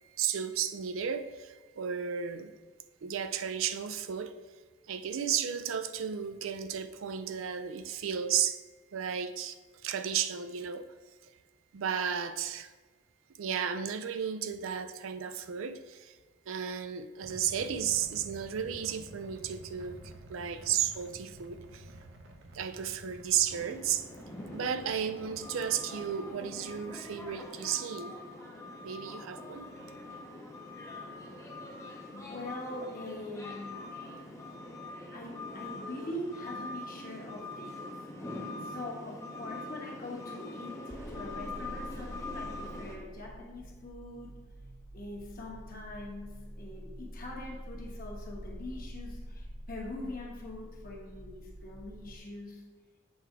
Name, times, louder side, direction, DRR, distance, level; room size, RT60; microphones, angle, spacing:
voice 1, 0.2-2.5 3.0-4.4 4.9-8.6 8.9-9.6 9.8-10.9 11.2-11.3 11.7-12.7 13.4-16.2 16.5-20.0 20.3-21.9 22.5-24.1 24.5-28.2 28.8-29.7, right 8 dB, 85° right, 11 dB, 0.4 m, -33 dB
sound 1, 17.2-27.5, right 1 dB, 60° right, 0.8 m, -51 dB
sound 2, 23.5-43.0, left 2 dB, 15° left, 0.7 m, -43 dB
voice 2, 32.1-33.9 35.1-38.0 38.6-44.3 44.9-52.6, left 1 dB, 45° left, -1 dB, 1.1 m, -43 dB
sound 3, 40.9-52.2, equal, 10° right, 0.3 m, -46 dB
7.7 x 3.4 x 4.8 m, 1.3 s
head